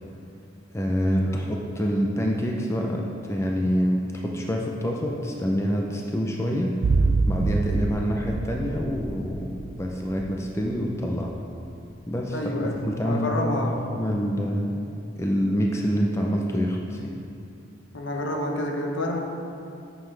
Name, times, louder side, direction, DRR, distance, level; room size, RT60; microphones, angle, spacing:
voice 1, 0.7-6.7 7.3-11.3 12.1-14.8 15.2-17.1, equal, 15° left, 0 dB, 0.5 m, -26 dB
sound 1, 6.8-11.1 11.3-11.4, right 3 dB, 70° right, 0.4 m, -26 dB
voice 2, 12.3-14.0 17.9-19.2, left 1 dB, 70° left, 1 dB, 0.9 m, -29 dB
9.5 x 6.8 x 3.3 m, 2.6 s
head